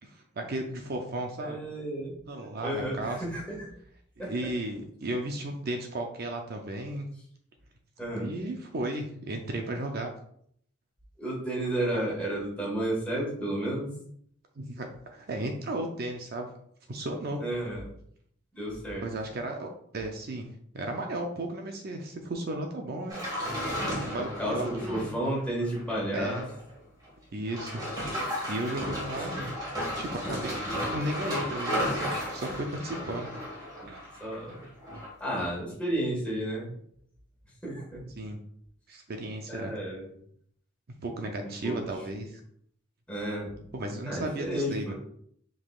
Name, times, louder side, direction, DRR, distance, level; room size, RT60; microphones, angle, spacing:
voice 1, 0.0-1.6 2.3-3.2 4.3-7.1 8.1-10.1 11.9-12.0 14.6-16.5 16.9-17.4 19.0-20.5 20.7-23.2 24.1-25.2 26.1-26.4 27.3-27.8 28.5-29.3 29.9-30.5 30.9-33.3 33.9-34.0 38.2-38.4 38.9-39.7 41.0-42.4 43.7-44.9, right 1 dB, 50° right, 3 dB, 0.5 m, -34 dB
voice 2, 1.4-2.2 2.6-3.7 4.2-4.3 8.0-8.3 11.2-13.9 17.4-18.0 18.5-19.1 24.1-26.4 29.3-29.5 34.2-34.7 35.2-36.7 37.6-38.1 39.5-40.1 41.4-41.8 43.1-43.6 44.0-44.9, right 1 dB, 5° left, -5 dB, 1.6 m, -32 dB
sound 1, 23.1-26.7 27.0-27.1 27.5-35.1 35.4-35.5, equal, 20° right, 1.6 m, -34 dB
4.9 x 3.8 x 2.4 m, 0.65 s
head